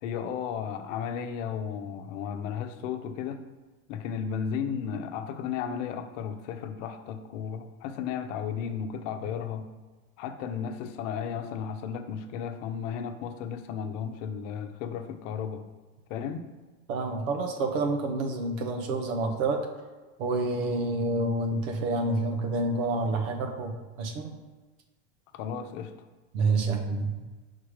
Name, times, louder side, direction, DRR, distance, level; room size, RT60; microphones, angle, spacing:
voice 1, 0.0-3.4 3.9-9.7 10.2-15.7 16.1-16.4 25.3-25.9, left 7 dB, 70° left, 7 dB, 0.8 m, -34 dB
voice 2, 16.9-19.6 20.2-23.7 24.0-24.3 26.3-27.3, right 2 dB, 85° right, 3 dB, 1.0 m, -28 dB
4.9 x 4.0 x 4.9 m, 1.3 s
supercardioid pair, 130°, 39 cm